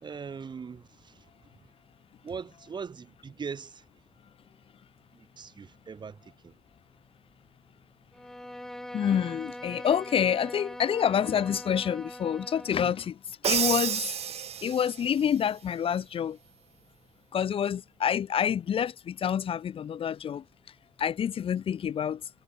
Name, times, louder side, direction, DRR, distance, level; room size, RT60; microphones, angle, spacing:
voice 1, 0.0-1.7 2.2-3.8 5.1-6.5 12.8-12.9, right 6 dB, 45° right, 2.1 m, -41 dB
Bowed string instrument, 8.1-13.1, left 1 dB, 5° left, 1.4 m, -42 dB
voice 2, 8.9-13.1 13.4-14.1 14.6-16.4 17.3-20.4 21.0-22.2, left 8 dB, 55° left, 0.5 m, -27 dB
Crash cymbal, 13.4-15.1, right 9 dB, 70° right, 1.3 m, -29 dB
wide cardioid pair, 135°, 11 cm